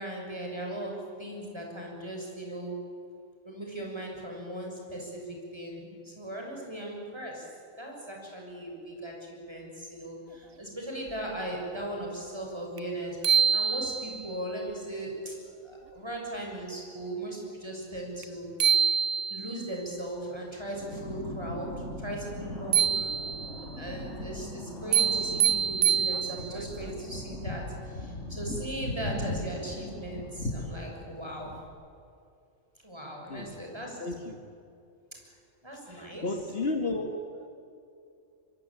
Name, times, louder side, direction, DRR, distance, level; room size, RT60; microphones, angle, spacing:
voice 1, 0.0-2.9 3.4-18.7 19.3-23.1 23.6-31.6 32.8-34.0 35.2-35.4 35.6-36.3, right 1 dB, 20° right, 0 dB, 6.8 m, -38 dB
sound 1, 12.8-12.9 13.2-14.3 18.2-18.3 18.6-19.7 22.7-23.6 24.9-26.7, right 8 dB, 50° right, 0.9 m, -25 dB
sound 2, 20.7-31.7, left 1 dB, 65° left, 6.2 m, -39 dB
voice 2, 34.0-34.4 35.9-37.5, left 2 dB, 50° left, 4 dB, 2.0 m, -33 dB
24.5 x 23.5 x 8.9 m, 2.6 s
omnidirectional pair, 1.3 m